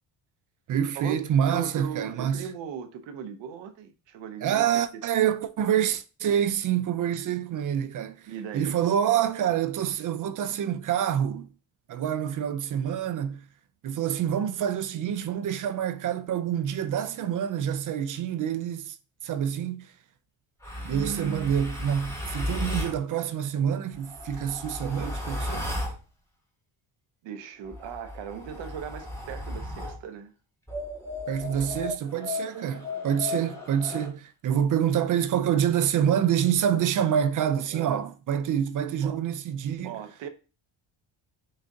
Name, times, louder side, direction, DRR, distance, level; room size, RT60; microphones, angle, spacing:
voice 1, 0.7-2.4 4.4-8.3 8.5-11.5 11.9-13.4 13.8-19.0 19.2-19.9 20.8-25.7 31.3-39.9, right 9 dB, 45° right, 0.4 m, -27 dB
voice 2, 1.5-5.0 8.3-8.8 20.7-21.9 27.2-30.3 37.7-38.0 38.3-38.4 39.0-39.2 39.8-40.3, right 7 dB, 75° right, 0.7 m, -38 dB
sound 1, 20.6-23.0 23.9-26.0 27.6-30.0 30.7-34.1, left 1 dB, 5° left, 1.1 m, -35 dB
6.3 x 2.4 x 2.6 m
cardioid pair, 80°, 45 cm